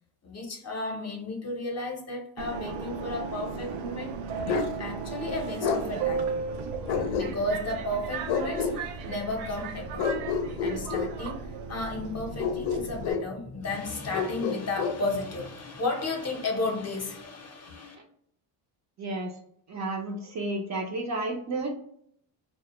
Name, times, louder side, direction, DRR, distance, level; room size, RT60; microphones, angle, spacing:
voice 1, 0.2-4.1 4.4-6.3 7.1-10.2 10.6-18.0, left 2 dB, 35° left, 2 dB, 0.6 m, -33 dB
Subway metro underground, 2.4-13.1, right 5 dB, 85° right, 0.6 m, -35 dB
Bark, 4.5-4.7 5.6-5.8 6.9-7.6 8.3-8.8 10.0-11.1 12.4-13.3 14.1-15.0, left 6 dB, 80° left, 0.5 m, -28 dB
voice 2, 19.0-19.3 19.7-21.7, right 2 dB, 40° right, 1 dB, 0.5 m, -31 dB
2.1 x 2.1 x 2.9 m, 0.67 s
cardioid pair, 95°, 48 cm